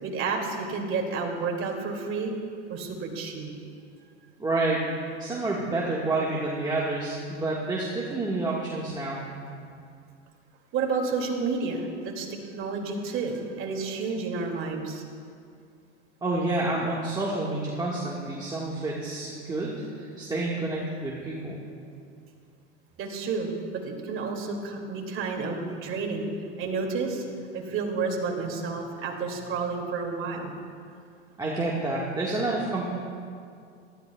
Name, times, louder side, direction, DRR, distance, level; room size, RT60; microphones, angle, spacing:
voice 1, 0.0-2.3 2.7-3.5 10.7-15.0 23.0-26.3 26.6-27.2 27.5-30.5, right 4 dB, 35° right, 1 dB, 2.3 m, -30 dB
voice 2, 4.4-4.9 5.2-9.2 16.2-21.6 31.4-32.9, right 2 dB, 10° right, -5 dB, 1.5 m, -29 dB
19.0 x 13.0 x 2.3 m, 2.3 s
hypercardioid pair, 110°, 35 cm